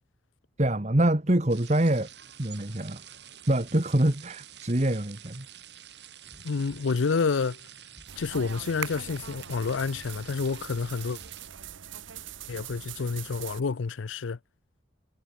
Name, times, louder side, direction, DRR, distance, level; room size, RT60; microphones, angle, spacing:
voice 1, 0.6-2.1 2.4-3.0 3.5-5.5, right 1 dB, 35° right, 1.5 m, -25 dB
sound 1, 1.5-11.5, right 10 dB, 60° right, 5.9 m, -49 dB
sound 2, 6.3-11.9, equal, 20° left, 6.1 m, -59 dB
voice 2, 6.4-7.6 8.2-11.2 12.5-14.4, left 4 dB, 85° left, 0.5 m, -29 dB
sound 3, 8.1-13.6, right 8 dB, 90° right, 1.1 m, -42 dB
head